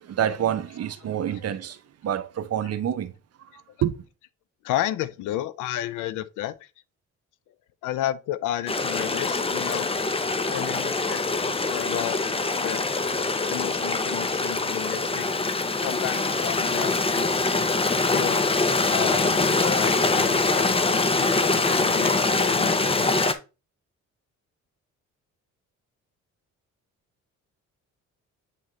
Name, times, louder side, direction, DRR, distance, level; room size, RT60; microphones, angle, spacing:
voice 1, 0.0-1.8 2.0-3.1 3.8-4.0, right 10 dB, 55° right, 0.8 m, -27 dB
voice 2, 4.6-6.7 7.8-9.9 10.5-11.2 11.7-12.2 12.6-12.8 13.5-15.3 15.8-17.3 18.1-18.4 18.9-23.1, left 13 dB, 90° left, 0.6 m, -32 dB
Stream, 8.7-23.3, left 3 dB, 20° left, 0.7 m, -24 dB
8.3 x 3.7 x 3.2 m
cardioid pair, 90°, 30 cm